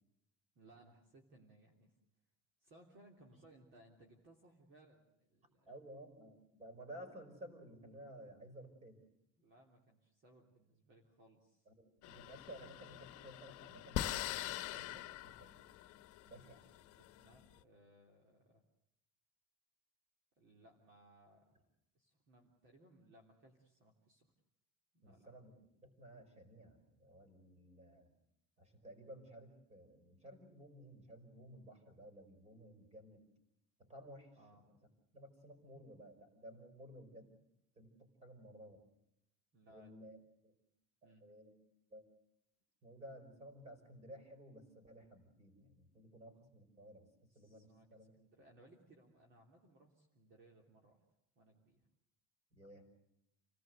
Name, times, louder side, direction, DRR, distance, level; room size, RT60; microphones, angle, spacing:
voice 1, 0.5-1.9 2.6-5.8 9.4-11.7 16.9-18.6 20.4-21.6 21.9-24.3 24.9-25.3 34.3-34.6 39.5-39.9 41.0-41.3 47.3-51.0 51.3-51.9, right 1 dB, 40° right, 1 dB, 3.3 m, -65 dB
voice 2, 5.7-9.0 11.7-15.6 16.3-16.7 25.0-25.5 25.8-28.1 28.6-33.2 33.8-34.4 35.1-37.3 37.8-38.8 39.7-40.2 40.4-40.6 41.0-41.5 41.9-42.0 42.8-47.1 47.4-48.1 52.5-52.9, right 1 dB, 20° right, 8 dB, 5.2 m, -55 dB
sound 1, 12.0-17.5, left 14 dB, 55° left, 1.1 m, -44 dB
29.5 x 18.5 x 7.9 m, 0.82 s
cardioid pair, 180°, 30 cm